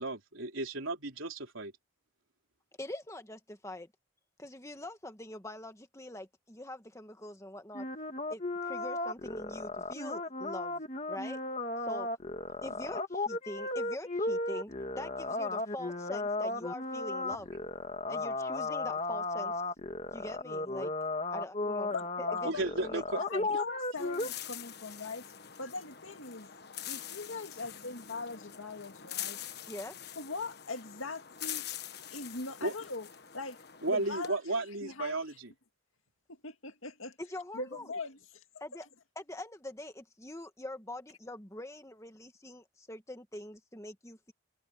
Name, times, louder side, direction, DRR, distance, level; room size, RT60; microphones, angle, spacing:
voice 1, 0.0-1.7 22.4-23.2 23.5-23.6 32.6-32.7 33.8-35.5, right 2 dB, 80° right, 3.8 m, -34 dB
voice 2, 2.8-3.9 4.4-7.8 8.3-10.8 11.1-11.4 11.8-12.1 12.6-17.5 18.1-19.6 20.1-20.9 21.3-21.9 22.4-22.5 22.8-23.0 23.3-23.5 29.7-29.9 37.2-37.8 38.6-38.8 39.2-44.3, left 1 dB, 15° left, 1.5 m, -44 dB
sound 1, 7.7-24.3, left 2 dB, 35° left, 2.2 m, -35 dB
voice 3, 21.9-22.6 23.3-25.2 25.6-26.5 26.8-29.4 30.0-31.7 32.1-33.1 33.3-35.4 36.3-37.2 37.5-38.4 38.7-38.8, left 3 dB, 80° left, 2.2 m, -41 dB
sound 2, 24.0-34.3, left 10 dB, 50° left, 1.4 m, -44 dB
head